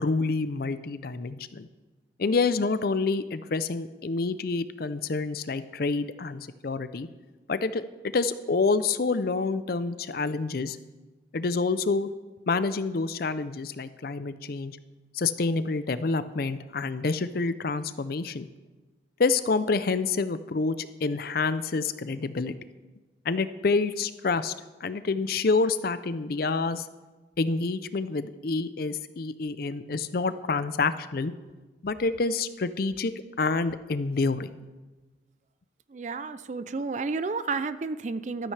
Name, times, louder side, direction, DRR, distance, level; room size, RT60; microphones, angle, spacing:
voice 1, 0.0-1.7 2.2-7.1 7.5-7.8 8.1-10.8 11.3-12.1 12.5-14.8 15.1-18.5 19.2-22.5 23.2-24.5 24.8-26.9 27.4-31.3 31.8-34.6, left 4 dB, 50° left, 13 dB, 0.5 m, -27 dB
voice 2, 35.9-38.5, right 4 dB, 40° right, 13 dB, 0.4 m, -31 dB
14.0 x 13.0 x 3.3 m, 1.2 s
head